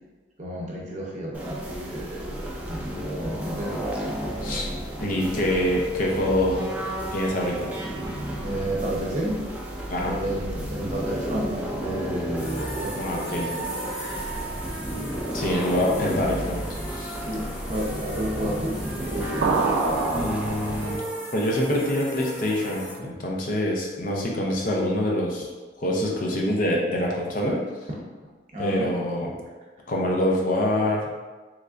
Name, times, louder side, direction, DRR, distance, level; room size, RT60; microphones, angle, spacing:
voice 1, 0.4-4.1 8.4-9.4 10.0-13.6 17.2-19.8 28.5-28.9, right 1 dB, 35° right, -4 dB, 0.7 m, -32 dB
sound 1, 1.3-21.0, right 1 dB, 5° right, 0.3 m, -32 dB
voice 2, 5.0-6.6 7.1-7.7 9.9-10.2 13.0-13.5 15.3-16.6 16.9-17.2 20.1-21.0 21.3-25.5 25.8-27.6 28.6-29.3 29.9-31.0, left 1 dB, 45° left, -2 dB, 0.5 m, -25 dB
sound 2, 12.4-22.9, right 1 dB, 65° left, 1.1 m, -37 dB
sound 3, 19.4-21.1, right 4 dB, 80° right, 0.3 m, -26 dB
3.5 x 3.2 x 2.4 m, 1.3 s
head